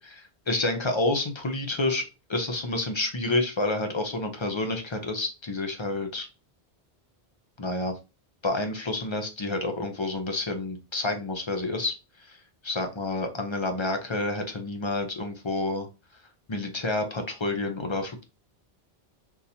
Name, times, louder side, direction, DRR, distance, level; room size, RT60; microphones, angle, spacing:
voice 1, 0.5-2.0 2.3-6.3 7.6-7.9 8.4-11.9 12.2-12.4 12.6-15.9 16.5-18.2, left 2 dB, 35° left, 5 dB, 0.5 m, -29 dB
3.8 x 2.8 x 2.6 m, 0.29 s
omnidirectional pair, 1.1 m